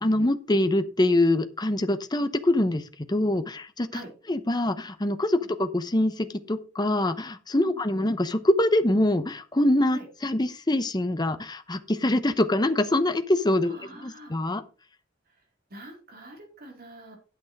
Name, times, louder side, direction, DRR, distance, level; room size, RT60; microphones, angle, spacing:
voice 1, 0.0-2.8 3.1-4.0 4.3-14.6, left 1 dB, 20° left, 10 dB, 0.9 m, -24 dB
voice 2, 13.6-14.4 15.7-17.2, right 1 dB, 55° right, 1 dB, 4.3 m, -45 dB
9.1 x 8.2 x 4.7 m, 0.34 s
head